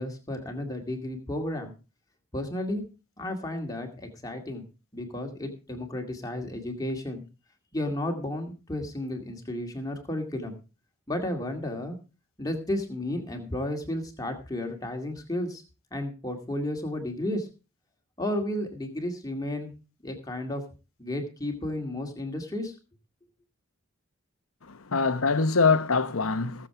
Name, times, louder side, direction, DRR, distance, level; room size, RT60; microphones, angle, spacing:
voice 1, 0.0-1.7 2.3-2.8 3.2-4.7 4.9-7.2 7.7-10.6 11.1-12.0 12.4-15.6 15.9-17.5 18.2-19.7 20.0-20.6 21.0-22.7, left 1 dB, 15° left, 2.2 m, -32 dB
voice 2, 24.6-26.7, left 4 dB, 75° left, 0.9 m, -24 dB
18.0 x 7.4 x 4.8 m
head